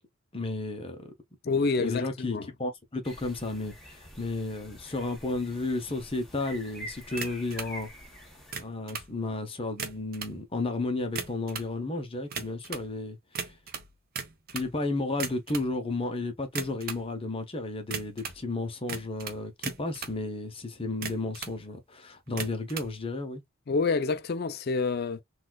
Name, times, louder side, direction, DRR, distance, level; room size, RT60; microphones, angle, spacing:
voice 1, 0.3-1.1 1.8-7.9 8.6-13.2 13.4-13.5 14.5-23.4, left 2 dB, 25° left, 0.8 m, -33 dB
voice 2, 1.4-2.5 23.7-25.2, left 4 dB, 45° left, 0.4 m, -27 dB
sound 1, 3.0-8.5, equal, ahead, 1.3 m, -46 dB
sound 2, 7.2-7.7 8.4-9.1 9.7-10.4 11.0-11.7 12.3-12.9 13.4-14.7 15.1-15.7 16.5-17.1 17.9-18.4 18.9-20.2 20.9-21.6 22.3-22.9, right 6 dB, 45° right, 0.7 m, -37 dB
4.1 x 2.4 x 2.3 m
head